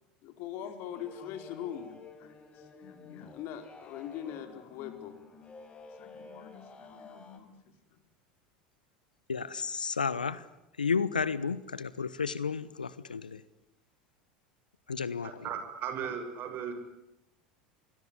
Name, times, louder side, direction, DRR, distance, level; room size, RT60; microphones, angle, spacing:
voice 1, 0.2-5.2 6.0-7.6, left 9 dB, 55° left, 8 dB, 4.6 m, -43 dB
sound 1, 0.9-7.4, left 4 dB, 25° left, 5.3 m, -51 dB
voice 2, 9.3-10.5 10.7-13.4 14.9-15.5, left 5 dB, 85° left, 18 dB, 1.1 m, -32 dB
voice 3, 15.2-16.7, right 8 dB, 45° right, 8 dB, 6.8 m, -37 dB
27.0 x 21.0 x 9.9 m, 0.88 s
figure-of-eight pair, 80°, 4 cm